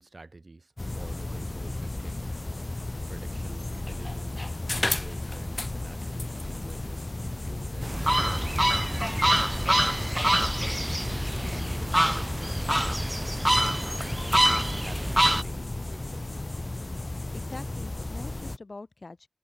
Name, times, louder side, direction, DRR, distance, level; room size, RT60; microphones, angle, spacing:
voice 1, 0.0-2.3 3.1-8.9 9.2-10.8 11.1-13.4 14.6-16.4, right 3 dB, 50° right, 1.9 m, -48 dB
sound 1, 0.8-18.6, left 2 dB, 35° left, 0.7 m, -34 dB
sound 2, 7.8-15.4, equal, 10° right, 0.5 m, -26 dB
voice 2, 17.1-19.3, left 3 dB, 55° left, 1.0 m, -44 dB
wide cardioid pair, 70°, 0 cm